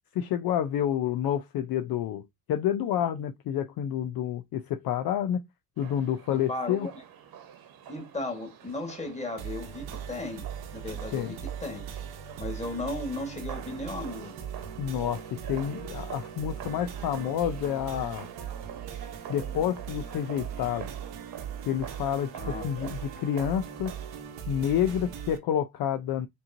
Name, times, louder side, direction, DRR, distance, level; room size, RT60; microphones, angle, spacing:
voice 1, 0.2-2.2 2.5-5.4 5.8-6.9 11.1-11.3 14.8-18.3 19.3-20.9 21.7-23.9 24.5-26.3, left 10 dB, 50° left, 0.6 m, -29 dB
sound 1, 5.8-24.2, right 9 dB, 50° right, 1.2 m, -46 dB
voice 2, 6.3-6.9 7.9-10.5 10.7-11.8 12.4-14.4 22.3-22.9, left 2 dB, 15° left, 1.7 m, -36 dB
sound 2, 9.4-25.4, right 8 dB, 75° right, 1.2 m, -40 dB
5.3 x 3.0 x 2.7 m
cardioid pair, 100°, 45 cm